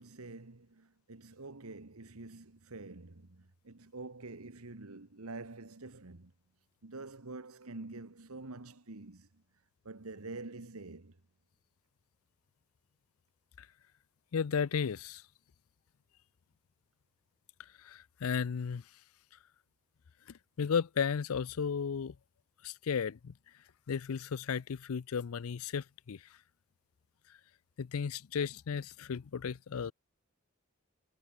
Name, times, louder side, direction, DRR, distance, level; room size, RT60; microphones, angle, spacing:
voice 1, 0.0-6.3 6.8-9.4 9.8-11.2, right 3 dB, 90° right, 1.5 m, -47 dB
voice 2, 14.3-15.2 17.8-18.8 20.6-22.1 22.6-23.3 23.9-26.2 27.8-29.9, left 6 dB, 80° left, 0.5 m, -34 dB
head